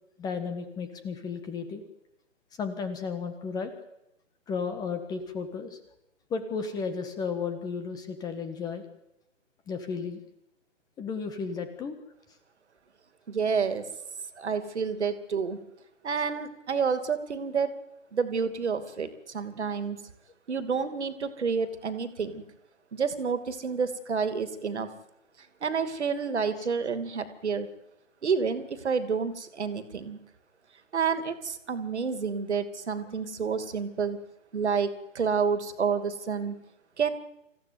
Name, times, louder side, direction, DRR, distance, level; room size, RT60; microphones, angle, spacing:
voice 1, 0.2-1.8 2.6-3.7 4.5-5.8 6.3-8.8 9.7-10.2 11.0-11.9 26.6-26.7, left 5 dB, 10° left, 9 dB, 1.6 m, -33 dB
voice 2, 13.3-13.8 14.4-15.6 16.0-17.7 18.1-20.0 20.5-22.4 22.9-24.9 25.6-27.7 28.2-30.2 30.9-34.2 34.5-36.6 37.0-37.1, right 5 dB, 60° right, 11 dB, 2.7 m, -29 dB
26.0 x 15.5 x 9.5 m, 0.85 s
figure-of-eight pair, 145°, 38 cm